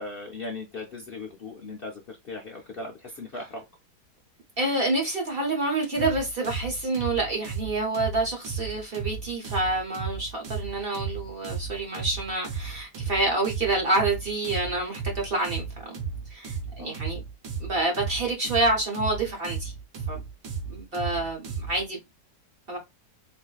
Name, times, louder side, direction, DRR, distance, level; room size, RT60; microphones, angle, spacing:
voice 1, 0.0-3.7 16.8-17.0, left 3 dB, 65° left, 0.5 m, -38 dB
voice 2, 4.6-16.0 16.3-17.2 17.6-19.7 20.1-20.2 20.7-22.0 22.7-22.8, right 2 dB, 40° right, 0.9 m, -28 dB
sound 1, 5.9-21.8, right 5 dB, 80° right, 1.5 m, -35 dB
4.1 x 2.6 x 2.3 m
omnidirectional pair, 1.8 m